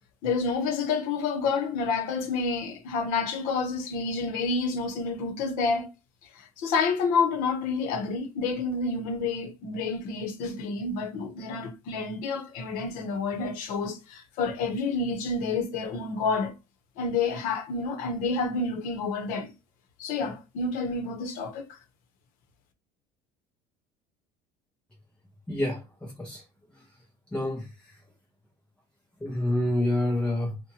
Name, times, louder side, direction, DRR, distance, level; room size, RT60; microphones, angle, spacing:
voice 1, 0.2-5.9 6.3-16.5 17.0-19.5 20.0-21.7, left 4 dB, 70° left, 0.7 m, -29 dB
voice 2, 25.5-26.4 27.3-28.0 29.2-30.6, left 1 dB, 5° left, 0.4 m, -28 dB
2.8 x 2.2 x 2.8 m
cardioid pair, 150°, 15 cm